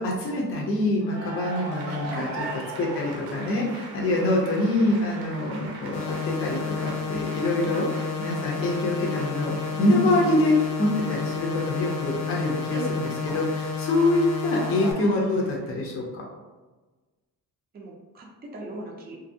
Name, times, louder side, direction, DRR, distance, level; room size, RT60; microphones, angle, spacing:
voice 1, 0.0-2.4 2.8-16.2, left 2 dB, 35° left, -2 dB, 0.5 m, -25 dB
Cheering / Applause, 1.0-15.9, right 2 dB, 85° right, 0.7 m, -41 dB
sound 1, 4.9-5.1 7.2-8.8 9.1-9.6 10.0-10.5 10.9-11.1 11.8-12.1 12.6-12.9 13.3-15.5, right 1 dB, 10° right, 0.8 m, -45 dB
sound 2, 5.9-14.9, left 5 dB, 80° left, 0.6 m, -31 dB
voice 2, 17.7-19.2, right 1 dB, 25° right, -1 dB, 0.5 m, -37 dB
2.6 x 2.5 x 2.6 m, 1.2 s
cardioid pair, 150°, 37 cm